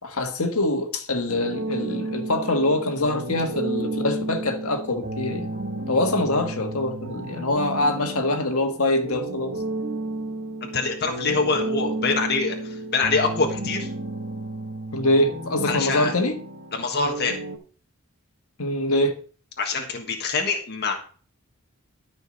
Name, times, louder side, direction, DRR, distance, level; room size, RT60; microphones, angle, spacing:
voice 1, 0.0-5.5 5.9-9.5 14.9-16.4 18.6-19.2, left 1 dB, 75° left, 1.6 m, -24 dB
sound 1, 1.3-17.6, right 2 dB, 40° right, 1.6 m, -32 dB
voice 2, 10.7-13.9 15.6-16.1 16.7-17.4 19.6-21.0, left 4 dB, 50° left, 1.5 m, -25 dB
12.5 x 5.1 x 5.4 m
head